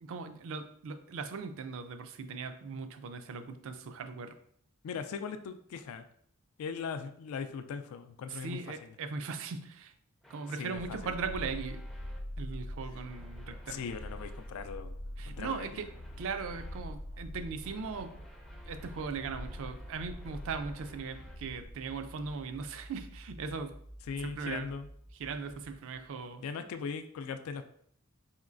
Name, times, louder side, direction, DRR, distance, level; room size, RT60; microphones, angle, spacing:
voice 1, 0.0-4.3 8.3-9.9 10.3-11.8 12.4-13.8 15.2-15.9 16.2-18.2 18.7-23.7 24.2-24.7 25.2-26.4, right 5 dB, 60° right, 9 dB, 0.4 m, -39 dB
voice 2, 4.8-6.1 6.6-8.9 10.5-11.1 13.7-15.0 15.3-15.7 24.1-24.9 26.4-27.6, left 6 dB, 70° left, 10 dB, 0.3 m, -39 dB
sound 1, 10.2-12.2 12.9-14.5 15.3-16.9 17.6-21.4, equal, ahead, 0.4 m, -57 dB
sound 2, 10.7-21.7, equal, 45° left, 0.8 m, -44 dB
sound 3, 15.0-26.3, equal, 90° right, 1.5 m, -54 dB
4.3 x 3.0 x 2.5 m, 0.65 s
head